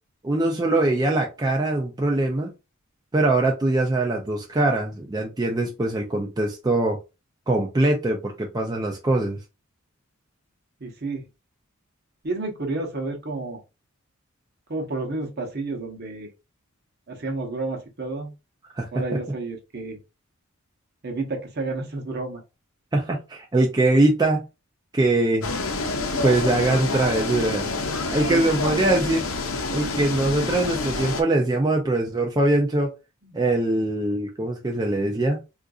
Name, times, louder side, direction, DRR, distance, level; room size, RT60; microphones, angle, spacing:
voice 1, 0.2-2.5 3.1-7.0 7.5-9.4 18.8-18.9 22.9-24.4 24.9-25.5 26.2-27.7 28.1-29.3 29.7-32.9 33.3-35.4, right 2 dB, 20° right, 0.4 m, -22 dB
voice 2, 10.8-11.3 12.2-13.6 14.7-16.3 17.1-18.3 18.9-20.0 21.0-22.4 28.3-28.4 33.3-33.4, right 3 dB, 50° right, 0.8 m, -30 dB
sound 1, 25.4-31.2, left 3 dB, 65° left, 0.7 m, -27 dB
3.7 x 2.5 x 2.3 m
head